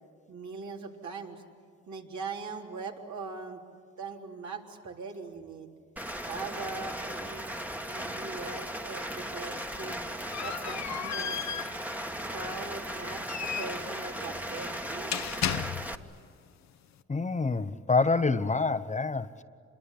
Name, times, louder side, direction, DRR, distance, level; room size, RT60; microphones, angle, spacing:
voice 1, 0.3-1.4 1.9-3.6 4.0-5.7 6.2-7.5 7.8-10.0 10.4-11.4 12.3-15.3, right 4 dB, 65° right, 1 dB, 3.6 m, -41 dB
Rain, 6.0-16.0, equal, 5° right, 1.5 m, -37 dB
sound 1, 9.6-16.2, left 9 dB, 60° left, 1.0 m, -36 dB
voice 2, 17.1-19.4, left 4 dB, 25° left, 10 dB, 1.0 m, -27 dB
27.0 x 22.5 x 10.0 m, 2.2 s
cardioid pair, 80°, 30 cm